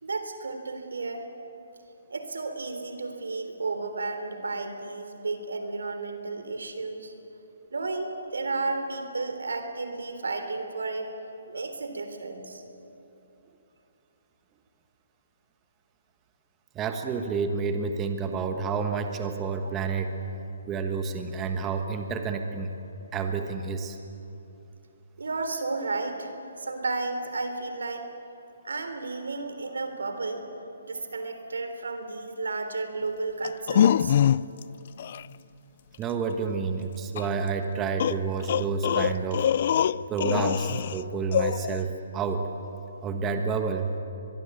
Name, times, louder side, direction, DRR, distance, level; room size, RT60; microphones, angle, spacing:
voice 1, 0.0-1.3 2.1-7.1 7.7-11.1 11.5-12.6 25.2-28.1 28.6-30.4 30.8-34.2, right 3 dB, 80° right, 7 dB, 3.6 m, -33 dB
voice 2, 16.7-20.1 20.7-22.7 23.1-24.0 36.0-39.4 40.1-42.5 43.0-43.9, right 5 dB, 20° right, 5 dB, 1.5 m, -29 dB
sound 1, 33.4-34.6 35.0-35.2 37.2-37.3 38.0-41.0 41.3-41.8, left 9 dB, 50° left, 0.5 m, -24 dB
24.0 x 22.0 x 8.5 m, 3.0 s
hypercardioid pair, 145°, 0 cm